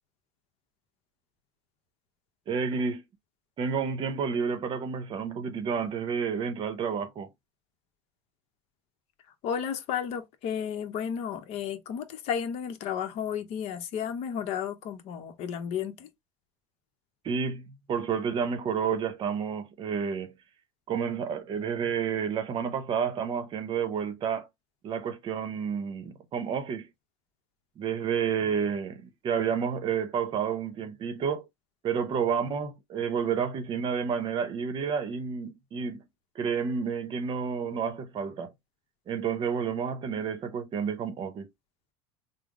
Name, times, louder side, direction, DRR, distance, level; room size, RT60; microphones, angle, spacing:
voice 1, 2.5-3.0 3.6-7.3 17.2-20.3 20.9-24.5 24.8-26.9 27.8-31.4 31.8-36.0 36.3-38.5 39.1-41.5, right 6 dB, 40° right, 0.7 m, -30 dB
voice 2, 9.4-16.1, left 8 dB, 55° left, 0.8 m, -33 dB
3.5 x 2.0 x 3.6 m
supercardioid pair, 110°, 13 cm